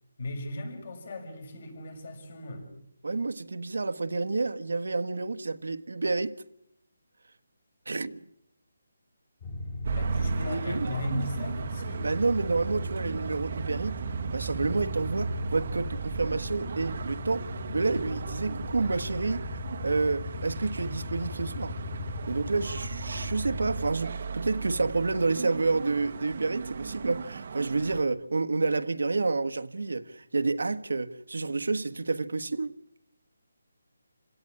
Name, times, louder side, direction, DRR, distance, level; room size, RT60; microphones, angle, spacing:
voice 1, 0.2-2.7 9.9-12.1, left 1 dB, 45° left, 6.9 m, -37 dB
voice 2, 3.0-6.4 7.9-8.2 10.4-10.9 12.0-14.0 14.3-21.8 22.3-32.7, right 3 dB, 85° right, 1.4 m, -29 dB
sound 1, 9.4-23.9, left 2 dB, 25° left, 3.4 m, -38 dB
sound 2, 9.8-28.0, right 5 dB, 40° right, 1.2 m, -36 dB
28.5 x 17.5 x 9.7 m
hypercardioid pair, 175°, 0 cm